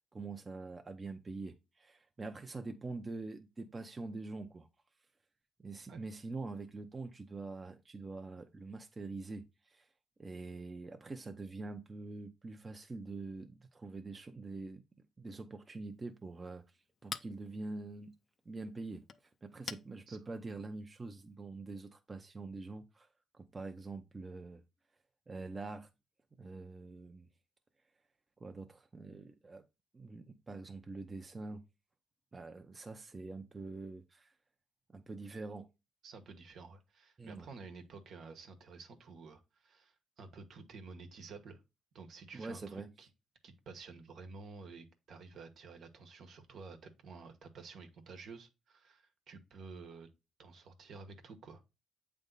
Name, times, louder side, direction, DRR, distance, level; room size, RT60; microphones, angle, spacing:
voice 1, 0.1-4.7 5.6-9.9 10.2-14.8 15.2-16.6 17.0-18.1 18.5-19.0 19.4-23.1 23.3-24.6 25.3-25.9 26.4-27.3 28.4-29.6 29.9-31.6 32.3-34.3 34.9-35.7 37.2-37.5 42.3-42.9, right 3 dB, 25° right, 0.8 m, -45 dB
Chink clink, 15.8-21.4, left 6 dB, 50° left, 0.5 m, -51 dB
voice 2, 36.0-41.6 41.9-43.1 43.4-50.1 50.4-51.7, right 4 dB, 65° right, 1.3 m, -51 dB
8.1 x 3.5 x 4.0 m
cardioid pair, 90°, 0 cm